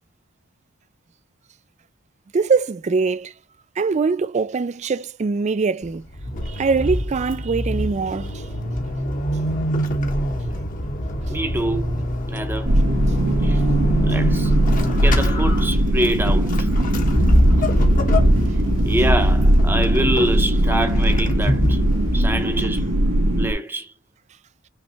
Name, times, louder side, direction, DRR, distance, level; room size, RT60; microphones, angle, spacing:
voice 1, 2.3-3.3 3.8-6.0 6.5-8.4, right 4 dB, 35° right, 0.4 m, -22 dB
Vehicle / Accelerating revving vroom / Squeak, 5.8-23.0, equal, 40° left, 1.0 m, -24 dB
voice 2, 11.3-11.9 12.3-12.7 13.4-13.6 14.0-14.5 15.0-16.7 18.8-21.8 22.1-22.9 23.4-23.9, right 1 dB, 10° right, 0.8 m, -25 dB
sound 1, 12.6-23.5, right 1 dB, 85° right, 1.7 m, -19 dB
5.6 x 3.2 x 2.8 m
head